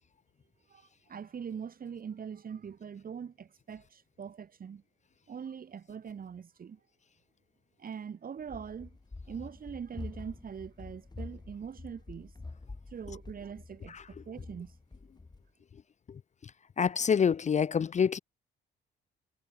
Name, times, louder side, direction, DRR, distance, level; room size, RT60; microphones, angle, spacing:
voice 1, 1.1-4.8 5.3-6.8 7.8-8.9 9.3-12.3 12.9-14.0 14.3-14.7, right 7 dB, 45° right, 2.5 m, -42 dB
Run, 8.4-15.5, left 3 dB, 20° left, 4.7 m, -47 dB
voice 2, 16.8-18.2, left 7 dB, 35° left, 0.6 m, -26 dB
cardioid pair, 90°, 20 cm